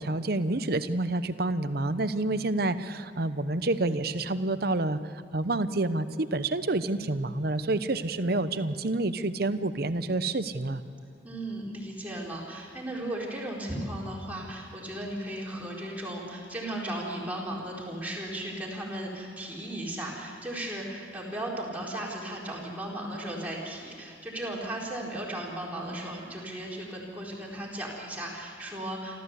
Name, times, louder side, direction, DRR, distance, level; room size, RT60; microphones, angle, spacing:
voice 1, 0.0-5.0 5.3-10.8, right 2 dB, 55° right, 12 dB, 0.9 m, -28 dB
voice 2, 11.2-29.2, right 1 dB, 10° right, -4 dB, 4.3 m, -36 dB
28.0 x 14.0 x 8.2 m, 2.7 s
head